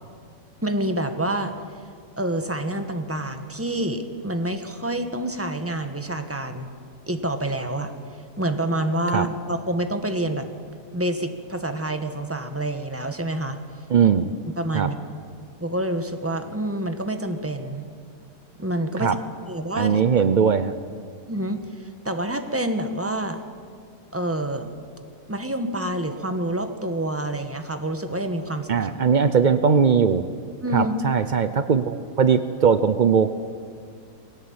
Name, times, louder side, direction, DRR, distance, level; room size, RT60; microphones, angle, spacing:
voice 1, 0.6-1.5 2.2-6.7 7.1-7.9 8.4-10.5 10.9-13.6 14.6-15.0 15.6-17.8 18.6-19.1 19.5-20.0 21.3-21.6 22.0-23.4 24.1-24.7 25.3-28.8 30.6-30.9, right 1 dB, 10° right, 7 dB, 1.2 m, -27 dB
voice 2, 13.9-14.3 14.7-14.9 19.0-19.2 19.7-20.7 28.7-30.2 30.7-33.3, right 6 dB, 75° right, 11 dB, 0.4 m, -19 dB
21.5 x 17.0 x 8.8 m, 2.1 s
omnidirectional pair, 1.8 m